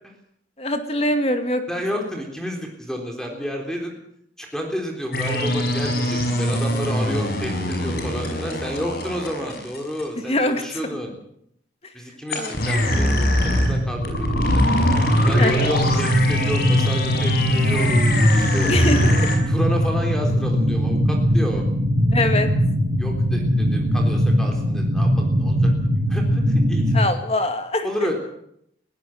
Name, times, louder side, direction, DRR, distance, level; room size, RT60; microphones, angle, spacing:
voice 1, 0.6-1.6 10.3-10.6 12.4-12.6 15.4-15.7 18.7-19.3 22.1-22.5 26.9-28.1, left 1 dB, 35° left, 7 dB, 2.2 m, -23 dB
voice 2, 1.7-3.9 4.4-11.1 11.9-14.0 14.6-14.7 15.3-18.0 18.3-18.7 19.5-21.6 23.0-25.7 26.1-26.9 27.8-28.1, equal, 5° left, 1 dB, 3.8 m, -30 dB
sound 1, 5.1-10.0 12.3-19.4, left 1 dB, 55° left, 5.8 m, -22 dB
sound 2, 12.8-27.0, equal, 65° right, 2.7 m, -21 dB
21.0 x 16.5 x 7.9 m, 0.73 s
head